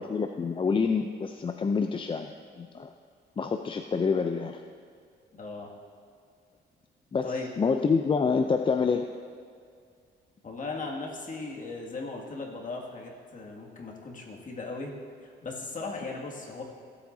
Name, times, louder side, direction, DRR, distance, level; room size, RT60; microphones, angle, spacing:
voice 1, 0.0-2.9 3.4-4.6 7.1-9.1, left 5 dB, 25° left, 6 dB, 0.4 m, -27 dB
voice 2, 5.4-5.7 7.2-7.5 10.4-15.0 15.2-16.6, left 3 dB, 40° left, -2 dB, 2.1 m, -37 dB
16.0 x 8.1 x 2.7 m, 2.3 s
cardioid pair, 90°, 20 cm